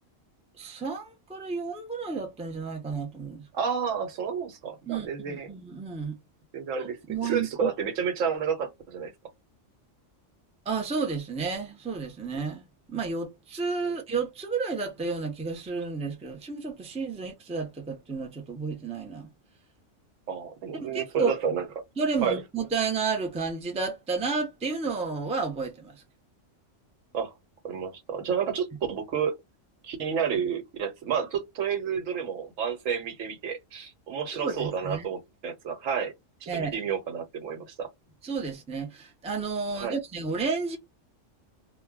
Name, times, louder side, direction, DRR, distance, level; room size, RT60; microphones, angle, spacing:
voice 1, 0.6-3.4 4.9-6.2 7.1-7.7 10.7-12.6 12.9-19.3 20.8-21.3 22.0-25.9 34.3-35.0 36.5-36.8 38.2-40.8, right 4 dB, 10° right, 0.3 m, -31 dB
voice 2, 3.5-5.5 6.5-9.1 13.8-13.9 20.3-21.8 22.2-22.4 27.1-27.3 27.6-29.4 29.8-36.1 36.4-37.9 39.7-40.0, right 7 dB, 85° right, 1.1 m, -30 dB
2.2 x 2.2 x 3.4 m
omnidirectional pair, 1.3 m